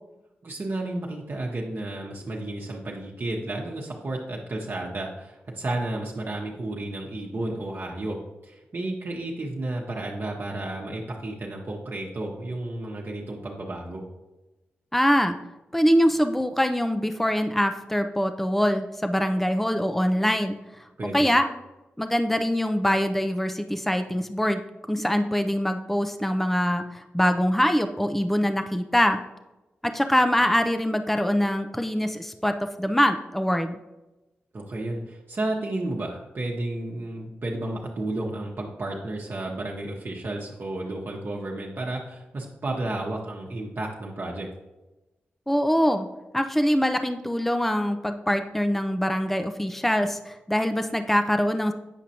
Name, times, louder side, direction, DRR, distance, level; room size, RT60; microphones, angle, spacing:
voice 1, 0.4-14.0 21.0-21.3 34.5-44.5, right 2 dB, 50° right, -2 dB, 1.0 m, -32 dB
voice 2, 14.9-15.4 15.7-20.6 21.1-21.5 22.0-29.2 29.8-33.8 45.5-46.1 46.3-51.7, equal, 5° left, 7 dB, 0.5 m, -24 dB
8.2 x 5.0 x 2.8 m, 1.0 s
supercardioid pair, 40°, 5 cm